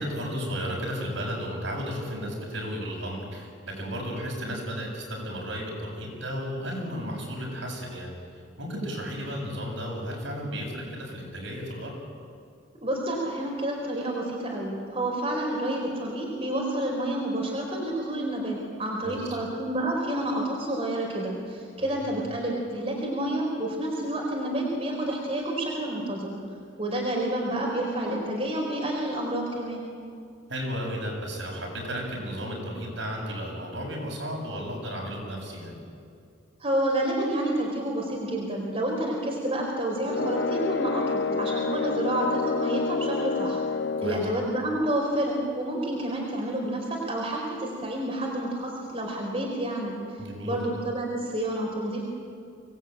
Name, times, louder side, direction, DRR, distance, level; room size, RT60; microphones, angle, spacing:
voice 1, 0.0-8.1 8.6-11.9 19.0-19.4 21.8-22.1 30.5-35.8 44.0-44.3 50.2-50.6, equal, 70° right, -1 dB, 7.4 m, -34 dB
voice 2, 12.8-26.3 26.8-29.9 36.6-43.6 44.0-50.0 50.4-52.0, right 1 dB, 30° right, -1 dB, 4.1 m, -29 dB
sound 1, 40.1-44.3, left 4 dB, 55° left, 0.5 m, -28 dB
25.0 x 19.5 x 9.0 m, 2.3 s
head